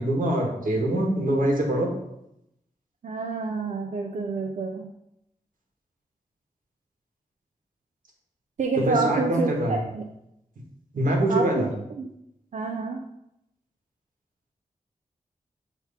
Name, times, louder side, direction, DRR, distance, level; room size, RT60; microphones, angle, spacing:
voice 1, 0.0-1.9 8.8-9.8 10.9-11.7, right 1 dB, 80° right, 0 dB, 1.7 m, -24 dB
voice 2, 3.0-4.9 8.6-10.0 11.3-11.7 12.0-12.1 12.5-13.0, right 4 dB, 60° right, 2 dB, 0.6 m, -28 dB
7.8 x 3.0 x 5.7 m, 0.81 s
wide cardioid pair, 135°, 14 cm